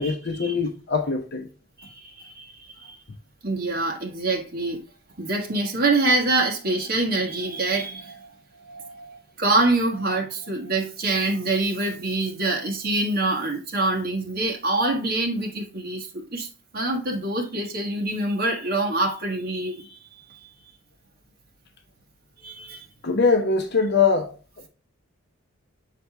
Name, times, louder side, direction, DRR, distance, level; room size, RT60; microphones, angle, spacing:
voice 1, 0.0-1.5 23.0-24.3, left 5 dB, 55° left, 0.7 m, -22 dB
voice 2, 1.8-3.0 3.4-4.8 5.2-8.3 8.6-16.5 16.7-20.5 22.4-22.9, right 2 dB, 50° right, 1.5 m, -25 dB
6.7 x 4.2 x 3.4 m
head